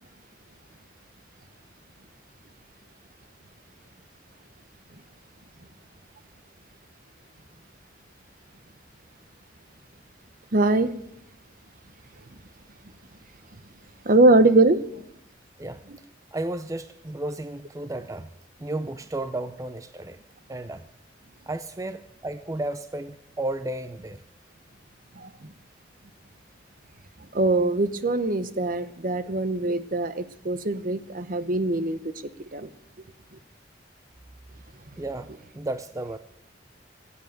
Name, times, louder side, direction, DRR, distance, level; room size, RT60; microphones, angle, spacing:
voice 1, 10.5-10.9 14.0-14.8 25.2-25.5 27.3-32.0 32.5-32.7, right 2 dB, 45° right, 0.9 m, -22 dB
voice 2, 15.6-16.1 16.3-18.3 18.6-20.2 20.5-20.9 21.5-24.2 35.0-36.2, right 2 dB, 15° right, 0.5 m, -33 dB
16.5 x 8.4 x 9.0 m
head